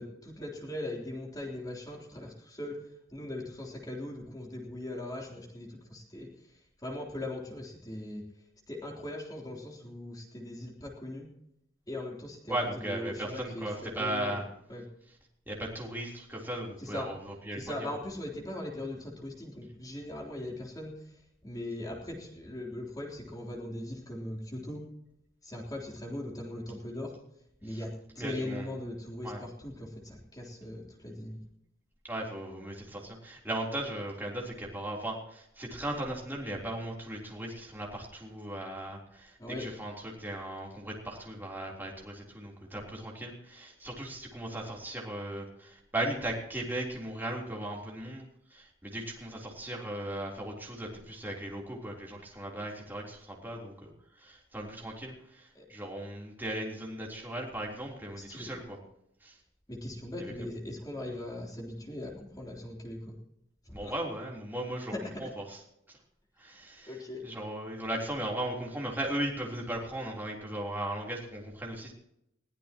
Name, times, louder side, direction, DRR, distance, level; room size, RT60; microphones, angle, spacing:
voice 1, 0.0-2.8 3.1-6.3 6.8-8.2 8.7-11.3 11.9-14.4 14.7-14.8 16.8-17.1 17.5-20.9 21.4-24.8 25.4-27.2 27.6-31.4 39.4-39.7 55.5-55.6 58.2-58.5 59.7-63.1 63.7-63.9 64.9-65.0 66.8-67.2, left 1 dB, 20° left, -1 dB, 3.6 m, -40 dB
voice 2, 12.5-14.5 15.5-17.9 27.7-27.8 28.2-28.7 29.2-29.4 32.0-53.9 54.2-58.8 59.2-59.4 60.2-60.3 63.7-64.9 65.2-65.6 66.4-66.9 67.2-71.9, right 1 dB, 10° right, -2 dB, 3.6 m, -37 dB
21.5 x 15.5 x 3.0 m, 0.78 s
head